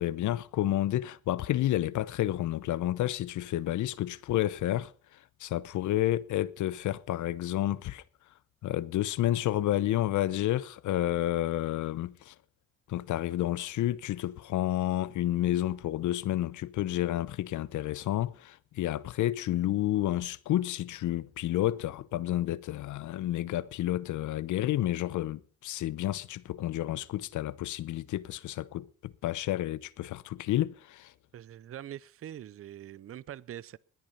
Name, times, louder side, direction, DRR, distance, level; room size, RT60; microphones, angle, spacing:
voice 1, 0.0-4.9 5.4-8.0 8.6-12.3 12.9-31.1, left 14 dB, 75° left, 0.8 m, -30 dB
voice 2, 31.3-33.8, right 11 dB, 50° right, 0.6 m, -43 dB
20.5 x 8.9 x 5.5 m
cardioid pair, 90°, 30 cm